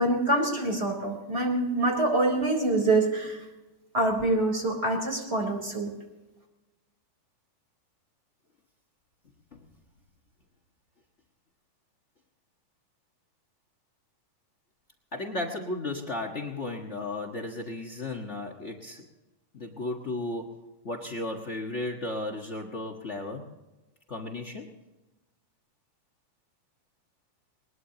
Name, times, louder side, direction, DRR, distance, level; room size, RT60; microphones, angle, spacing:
voice 1, 0.0-3.4 3.9-5.9, right 2 dB, 20° right, 1 dB, 3.9 m, -25 dB
voice 2, 15.1-19.1 19.5-23.5 24.1-24.7, left 2 dB, 75° left, 4 dB, 0.6 m, -35 dB
22.0 x 21.0 x 2.9 m, 1.1 s
omnidirectional pair, 3.8 m